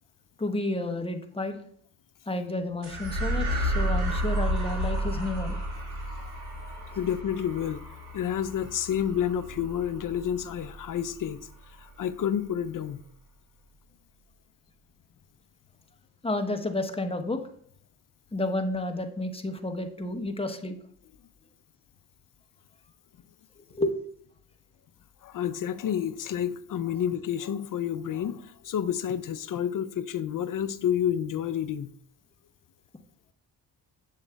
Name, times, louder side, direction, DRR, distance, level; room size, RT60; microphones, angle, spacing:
voice 1, 0.4-1.6 2.3-5.6 16.2-17.4 18.3-20.7 23.7-23.9, left 2 dB, 15° left, 5 dB, 1.0 m, -31 dB
sound 1, 2.8-11.5, equal, 85° right, 1.8 m, -32 dB
voice 2, 7.0-7.8 8.1-11.4 11.8-13.0 25.2-31.9, left 9 dB, 50° left, 13 dB, 0.6 m, -29 dB
7.4 x 7.0 x 2.3 m, 0.63 s
supercardioid pair, 60°, 42 cm